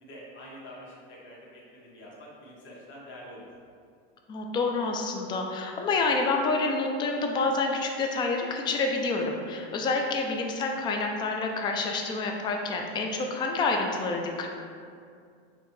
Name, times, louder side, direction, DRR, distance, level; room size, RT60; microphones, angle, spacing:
voice 1, 0.0-3.5, equal, 40° left, -5 dB, 1.3 m, -46 dB
voice 2, 4.3-14.5, left 3 dB, 15° left, 2 dB, 0.3 m, -28 dB
5.1 x 2.8 x 3.1 m, 2.3 s
supercardioid pair, 125°, 30 cm